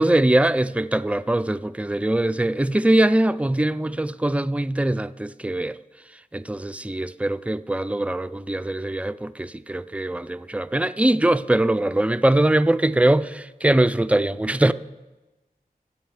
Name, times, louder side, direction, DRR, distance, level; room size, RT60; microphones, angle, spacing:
voice 1, 0.0-5.8 6.3-14.7, right 1 dB, 10° right, 0.4 m, -22 dB
22.0 x 8.6 x 3.3 m
wide cardioid pair, 55°, 16 cm